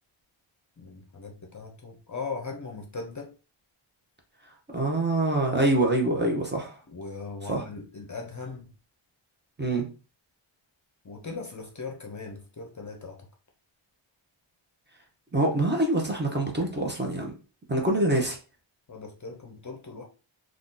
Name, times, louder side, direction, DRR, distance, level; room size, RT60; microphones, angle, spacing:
voice 1, 0.8-3.3 6.9-8.7 11.0-13.2 18.9-20.0, left 4 dB, 40° left, 2 dB, 0.6 m, -39 dB
voice 2, 4.7-6.8 7.4-7.6 9.6-9.9 15.3-17.3 17.7-18.4, right 2 dB, 20° right, 0 dB, 0.7 m, -25 dB
2.7 x 2.4 x 3.7 m, 0.34 s
wide cardioid pair, 145°, 49 cm